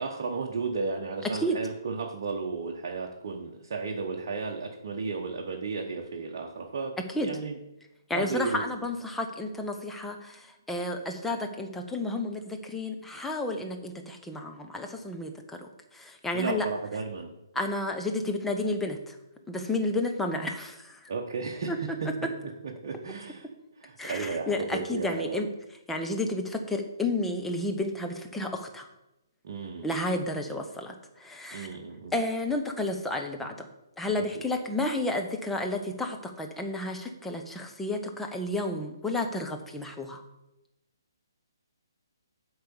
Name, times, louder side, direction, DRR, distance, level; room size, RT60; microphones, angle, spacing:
voice 1, 0.0-6.9 7.2-7.6 8.1-8.6 16.3-17.3 21.1-22.1 22.8-23.5 23.8-25.4 29.4-29.9 31.5-32.2 34.3-34.4, right 4 dB, 45° right, 1 dB, 1.0 m, -34 dB
voice 2, 7.0-7.3 8.1-16.7 17.5-19.2 19.5-21.1 21.7-21.8 24.0-25.5 25.9-28.9 29.8-31.7 32.1-33.7 34.0-40.2, left 2 dB, 5° left, 3 dB, 0.8 m, -31 dB
7.8 x 4.8 x 6.9 m, 0.92 s
figure-of-eight pair, 135°, 2 cm